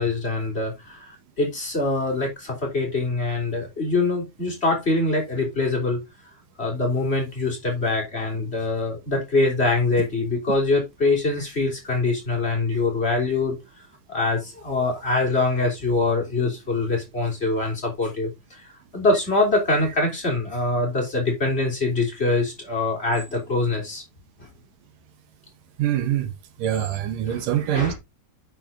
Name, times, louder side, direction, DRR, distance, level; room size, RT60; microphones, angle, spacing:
voice 1, 0.0-6.0 6.6-13.6 14.1-24.0 24.4-24.5 27.3-27.5 27.7-27.9, left 3 dB, 20° left, 3.6 m, -24 dB
voice 2, 25.8-26.3 26.6-27.9, right 11 dB, 80° right, 2.7 m, -24 dB
8.9 x 6.2 x 3.7 m
omnidirectional pair, 3.7 m